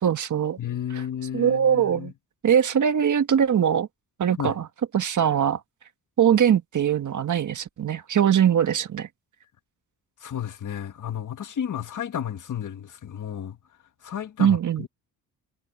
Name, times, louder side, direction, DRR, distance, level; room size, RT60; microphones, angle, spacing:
voice 1, 0.0-0.6 1.3-2.1 2.4-3.9 4.2-4.7 4.9-5.6 6.2-9.1 14.4-14.9, right 8 dB, 50° right, 1.7 m, -21 dB
voice 2, 0.6-2.1 4.3-4.5 10.2-13.6 14.0-14.9, left 9 dB, 50° left, 1.7 m, -32 dB
cardioid pair, 125°, 39 cm